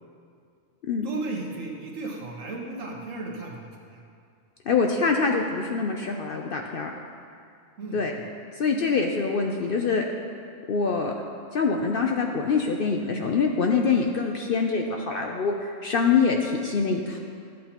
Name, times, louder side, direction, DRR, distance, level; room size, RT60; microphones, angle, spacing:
voice 1, 1.0-4.0 7.8-8.2, right 2 dB, 70° right, -2 dB, 1.6 m, -35 dB
voice 2, 4.7-6.9 7.9-8.1 8.6-10.0 10.7-11.1 11.5-17.2, left 5 dB, 60° left, 2 dB, 0.6 m, -24 dB
13.0 x 8.4 x 2.9 m, 2.3 s
omnidirectional pair, 1.4 m